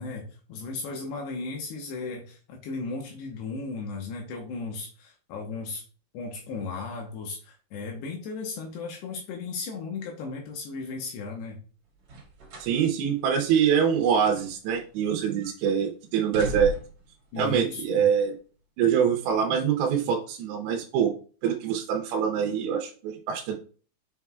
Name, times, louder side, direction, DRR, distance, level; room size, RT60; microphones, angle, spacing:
voice 1, 0.0-5.8 6.1-11.6 17.3-18.1, left 4 dB, 75° left, 1 dB, 3.0 m, -36 dB
sound 1, 12.0-12.8 13.2-13.3 14.0-15.1 15.4-15.7 16.1-17.1 17.9-18.1, right 2 dB, 50° right, 2.5 m, -37 dB
voice 2, 12.6-16.7 17.4-18.4 18.8-21.1 21.4-23.6, right 7 dB, 80° right, 2 dB, 3.0 m, -24 dB
7.4 x 5.8 x 2.4 m, 0.39 s
omnidirectional pair, 5.1 m